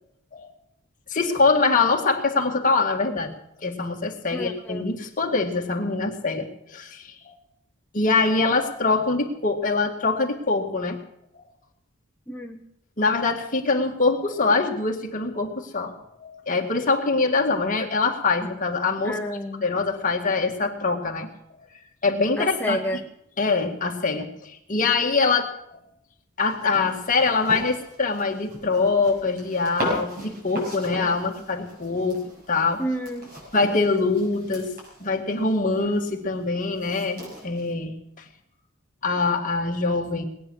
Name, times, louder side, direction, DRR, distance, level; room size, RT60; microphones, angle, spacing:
voice 1, 1.1-7.4 7.9-11.0 11.3-11.4 13.0-19.2 19.6-21.3 22.0-22.8 23.4-25.8 26.4-32.8 33.5-34.7 35.0-38.3 39.0-40.2, left 3 dB, 40° left, 2 dB, 2.0 m, -24 dB
voice 2, 4.3-4.9 12.3-12.6 19.0-19.7 22.4-23.0 32.8-33.3, equal, 10° left, 2 dB, 0.7 m, -30 dB
sound 1, 26.4-37.7, equal, 45° right, 7.1 m, -37 dB
20.5 x 9.6 x 6.4 m, 0.76 s
head